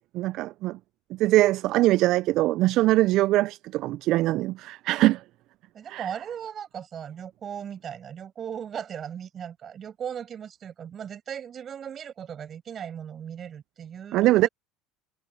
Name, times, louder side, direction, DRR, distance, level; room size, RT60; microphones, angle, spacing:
voice 1, 0.1-0.8 1.1-5.2 5.9-6.1 14.1-14.5, right 17 dB, 60° right, 0.3 m, -22 dB
voice 2, 5.7-14.5, right 8 dB, 40° right, 7.7 m, -37 dB
hypercardioid pair, 85°, 0 cm